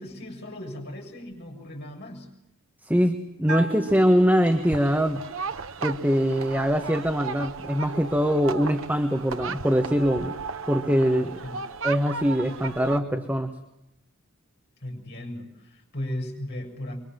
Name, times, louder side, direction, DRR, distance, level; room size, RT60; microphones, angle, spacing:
voice 1, 0.0-2.3 11.4-11.6 14.8-17.0, left 1 dB, 50° left, 1 dB, 7.1 m, -36 dB
voice 2, 2.8-5.2 5.8-10.4 10.7-11.4 11.8-13.5, equal, 10° right, 5 dB, 1.4 m, -23 dB
Bell, 3.5-5.1, right 1 dB, 85° right, 3.9 m, -35 dB
sound 1, 3.9-13.0, right 5 dB, 60° right, 0.9 m, -36 dB
30.0 x 23.5 x 7.6 m, 0.91 s
head